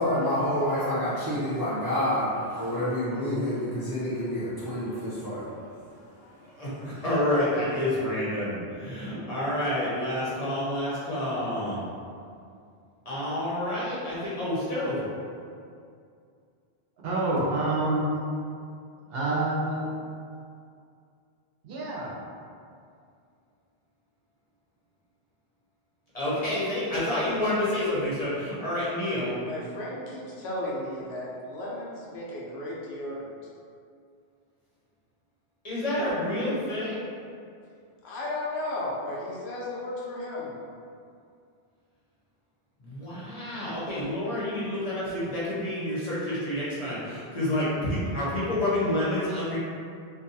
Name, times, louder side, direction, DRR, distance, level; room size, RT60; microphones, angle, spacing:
voice 1, 0.0-6.6, left 1 dB, 30° right, -12 dB, 0.5 m, -29 dB
voice 2, 6.6-11.8 13.1-15.0 26.1-29.4 35.6-37.1 42.8-49.6, left 1 dB, 40° left, -9 dB, 0.7 m, -28 dB
voice 3, 17.0-18.1 19.1-19.9 21.6-22.1, right 2 dB, 70° right, -5 dB, 0.8 m, -27 dB
voice 4, 29.4-33.3 38.0-40.5, left 1 dB, 90° left, -5 dB, 0.9 m, -34 dB
2.6 x 2.3 x 2.6 m, 2.4 s
omnidirectional pair, 1.1 m